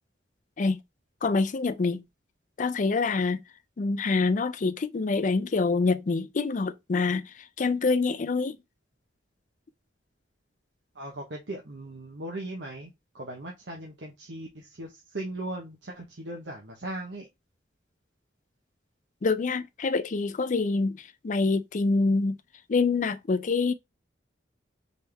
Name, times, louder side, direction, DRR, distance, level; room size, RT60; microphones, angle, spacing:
voice 1, 1.2-2.0 2.6-3.4 3.8-8.6 19.2-22.4 22.7-23.7, left 4 dB, 45° left, 0.4 m, -26 dB
voice 2, 10.9-17.3, right 1 dB, 85° right, 1.1 m, -38 dB
4.1 x 3.7 x 3.3 m
head